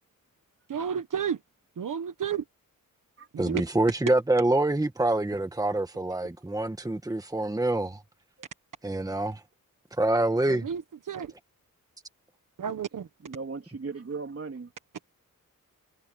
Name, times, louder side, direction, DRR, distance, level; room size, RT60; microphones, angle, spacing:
voice 1, 0.7-1.4 1.8-2.4 3.3-3.6 10.5-11.3 12.6-13.1, right 7 dB, 65° right, 1.2 m, -31 dB
voice 2, 3.4-8.0 8.8-9.4 10.0-10.7, right 2 dB, 10° right, 1.6 m, -26 dB
voice 3, 13.2-14.7, right 4 dB, 45° right, 3.3 m, -37 dB
wide cardioid pair, 130°, 34 cm